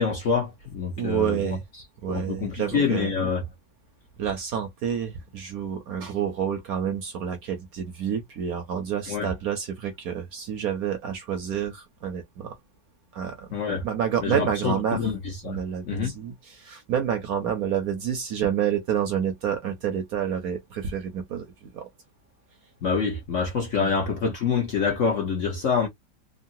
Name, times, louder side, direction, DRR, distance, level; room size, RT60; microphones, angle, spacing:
voice 1, 0.0-1.5 2.1-3.4 9.1-9.3 13.5-13.9 14.2-15.2 15.4-15.6 15.8-16.1 22.8-25.9, left 5 dB, 55° left, 0.9 m, -26 dB
voice 2, 1.0-1.6 2.0-3.1 4.2-12.6 13.1-13.5 13.8-15.1 15.4-21.9 23.8-23.9, right 8 dB, 65° right, 1.0 m, -29 dB
3.8 x 2.0 x 2.6 m
omnidirectional pair, 2.0 m